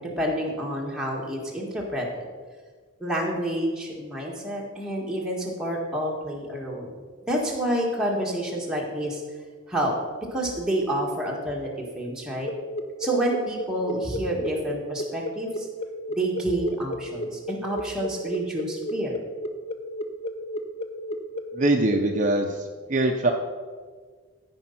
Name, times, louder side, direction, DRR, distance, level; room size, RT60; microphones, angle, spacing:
voice 1, 0.0-2.3 3.0-6.9 7.3-9.2 9.7-9.9 10.3-12.5 13.0-15.7 16.1-19.2, right 1 dB, 5° right, -3 dB, 1.7 m, -28 dB
sound 1, 12.4-22.3, left 1 dB, 30° left, 0.6 m, -33 dB
voice 2, 21.5-23.3, right 2 dB, 40° right, 3 dB, 0.7 m, -23 dB
14.0 x 5.3 x 5.8 m, 1.5 s
head